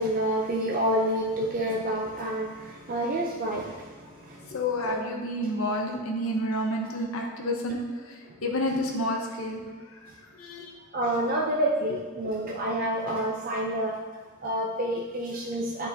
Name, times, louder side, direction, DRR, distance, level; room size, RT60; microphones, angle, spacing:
voice 1, 0.0-5.0 5.4-5.9 6.5-7.0 8.3-8.4 8.9-9.0 10.9-14.0 14.4-15.9, right 1 dB, 40° right, -2 dB, 0.5 m, -29 dB
voice 2, 4.5-7.8 8.4-9.6 10.3-10.7 11.9-12.0, left 1 dB, 85° left, 1 dB, 0.9 m, -29 dB
9.1 x 3.9 x 2.7 m, 1.5 s
head